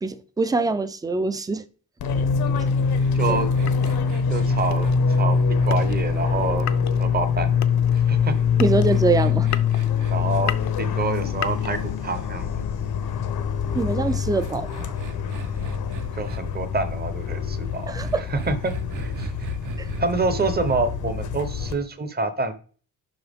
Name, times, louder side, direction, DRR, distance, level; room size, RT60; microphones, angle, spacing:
voice 1, 0.0-1.6 3.3-3.4 8.6-9.5 13.7-14.9 17.9-18.2 19.8-19.9, right 3 dB, 10° right, 0.3 m, -24 dB
Fixed-wing aircraft airplane, 2.0-21.7, left 6 dB, 85° left, 1.1 m, -24 dB
sound 1, 2.6-12.3, left 10 dB, 50° left, 0.5 m, -37 dB
sound 2, 2.8-7.2 8.2-12.3 13.6-16.4 18.0-20.8, right 3 dB, 60° right, 0.8 m, -39 dB
voice 2, 3.1-3.5 4.3-6.7 7.0-7.5 7.9-8.4 10.1-12.6 16.2-19.3 20.0-22.5, right 3 dB, 25° right, 0.7 m, -27 dB
7.8 x 5.7 x 3.5 m
wide cardioid pair, 180°, 36 cm